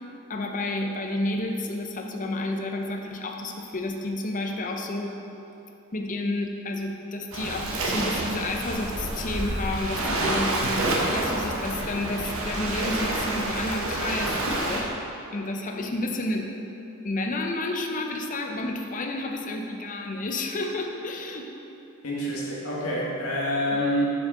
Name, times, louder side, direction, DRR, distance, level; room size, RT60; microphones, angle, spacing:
voice 1, 0.3-5.2 5.9-10.6 11.1-14.9 15.3-16.5 17.0-21.5 23.7-23.8, left 2 dB, 40° left, 3 dB, 0.6 m, -30 dB
Waves surf, 7.3-14.8, right 2 dB, 65° right, 0.9 m, -28 dB
voice 2, 22.0-24.1, equal, 80° left, -5 dB, 1.6 m, -27 dB
7.2 x 6.3 x 3.8 m, 2.9 s
head